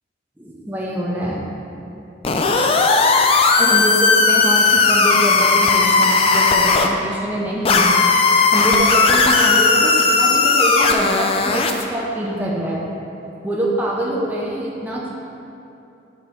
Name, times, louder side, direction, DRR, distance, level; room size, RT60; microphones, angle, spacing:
voice 1, 0.4-1.4 2.6-2.7 3.6-7.9 8.5-12.8 13.4-15.1, right 1 dB, 10° right, -5 dB, 0.6 m, -24 dB
sound 1, 2.2-6.9 7.7-11.8, left 4 dB, 30° left, 0.3 m, -16 dB
6.6 x 3.0 x 5.4 m, 2.8 s
head